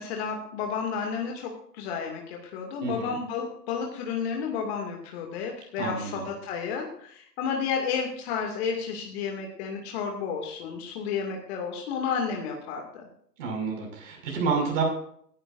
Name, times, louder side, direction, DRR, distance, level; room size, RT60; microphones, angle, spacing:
voice 1, 0.0-13.0, left 6 dB, 40° left, 1 dB, 2.4 m, -32 dB
voice 2, 2.8-3.1 5.8-6.2 13.4-14.8, right 5 dB, 50° right, 1 dB, 6.1 m, -29 dB
22.5 x 12.0 x 2.6 m, 0.64 s
figure-of-eight pair, 115°, 49 cm